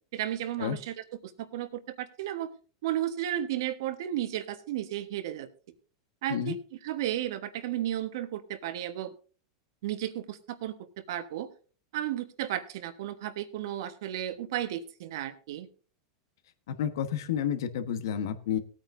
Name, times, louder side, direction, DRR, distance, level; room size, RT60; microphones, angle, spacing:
voice 1, 0.1-2.5 2.8-5.5 6.2-6.6 6.8-9.1 9.8-11.5 11.9-15.7, right 12 dB, 70° right, 10 dB, 1.3 m, -33 dB
voice 2, 16.7-18.6, left 9 dB, 75° left, 10 dB, 1.3 m, -30 dB
18.0 x 9.0 x 2.7 m, 0.39 s
hypercardioid pair, 115°, 2 cm